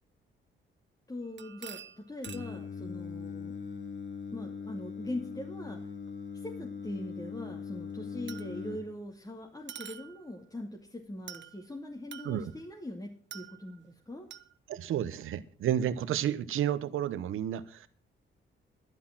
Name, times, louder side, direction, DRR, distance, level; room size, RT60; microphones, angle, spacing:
voice 1, 1.1-3.5 4.3-5.8 6.3-14.3, left 1 dB, 20° left, 0 dB, 2.5 m, -41 dB
sound 1, 1.2-2.6 6.1-6.2 8.3-8.8 9.7-10.4 11.3-11.7 12.1-12.7 13.3-13.9 14.3-14.5, right 10 dB, 65° right, 0.9 m, -47 dB
Singing, 2.2-8.8, left 5 dB, 65° left, 3.1 m, -40 dB
voice 2, 14.7-17.9, right 10 dB, 90° right, 14 dB, 1.0 m, -31 dB
12.0 x 11.0 x 6.0 m, 0.43 s
cardioid pair, 85°, 20 cm